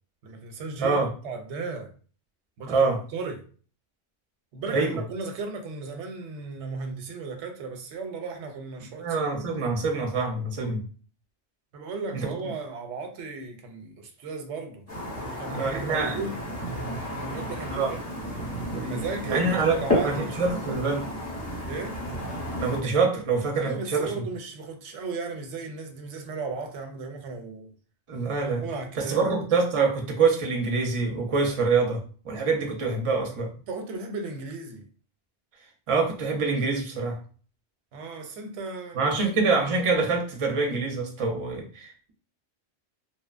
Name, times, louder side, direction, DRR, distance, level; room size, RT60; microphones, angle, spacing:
voice 1, 0.2-1.9 2.6-3.4 4.5-9.4 11.7-14.8 15.1-16.4 17.2-18.0 18.7-20.4 21.6-22.0 23.6-27.7 28.4-29.3 33.7-34.9 37.9-39.3, right 4 dB, 90° right, 0.9 m, -36 dB
voice 2, 2.7-3.0 4.7-5.0 8.8-10.8 12.1-12.3 15.5-16.2 17.7-17.9 19.2-21.1 22.6-24.2 28.1-28.6 29.0-33.5 35.9-37.2 38.9-42.1, right 4 dB, 40° right, 0.5 m, -25 dB
sound 1, 14.9-22.8, equal, 15° left, 0.8 m, -32 dB
2.7 x 2.1 x 2.4 m
omnidirectional pair, 1.1 m